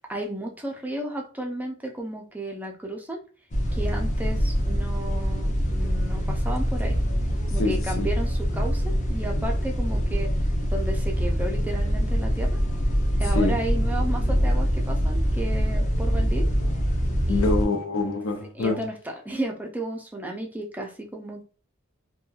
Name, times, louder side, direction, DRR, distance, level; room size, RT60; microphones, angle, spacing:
voice 1, 0.1-3.2 3.7-7.0 7.5-8.8 9.1-10.3 10.7-12.6 13.2-16.5 17.3-17.5 18.5-21.4, right 1 dB, 10° right, 0.4 m, -33 dB
sound 1, 3.5-17.7, equal, 35° left, 0.6 m, -24 dB
voice 2, 7.6-8.1 13.3-13.6 17.3-18.8, left 3 dB, 75° left, 0.6 m, -25 dB
2.9 x 2.2 x 2.3 m
head